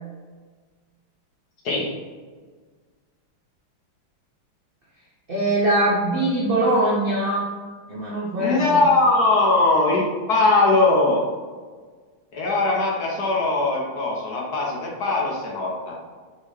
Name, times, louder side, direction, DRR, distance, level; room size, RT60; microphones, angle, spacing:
voice 1, 5.3-7.5 7.9-8.6, right 1 dB, 70° right, -6 dB, 0.5 m, -22 dB
voice 2, 8.4-10.0 10.3-11.2 12.3-15.9, left 2 dB, 60° left, -3 dB, 1.2 m, -20 dB
4.1 x 3.8 x 3.2 m, 1.5 s
omnidirectional pair, 2.2 m